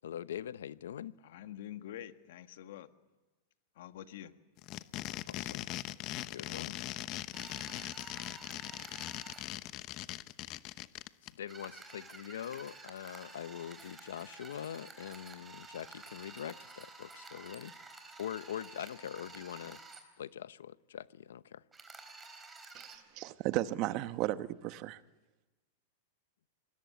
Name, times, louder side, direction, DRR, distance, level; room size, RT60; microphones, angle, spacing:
voice 1, 0.0-1.1 5.3-5.7 6.3-6.8 11.3-17.7 18.2-19.8 20.2-21.6, left 10 dB, 85° left, 0.8 m, -43 dB
voice 2, 1.2-2.9 3.7-4.3 7.6-8.1, left 11 dB, 70° left, 1.6 m, -47 dB
sound 1, 4.6-11.3, left 16 dB, 40° left, 0.9 m, -40 dB
sound 2, 7.3-9.5 11.4-20.0 21.7-23.0, right 3 dB, 10° right, 4.2 m, -51 dB
voice 3, 22.7-25.0, right 15 dB, 45° right, 1.1 m, -35 dB
26.0 x 20.5 x 9.5 m
hypercardioid pair, 135°, 0 cm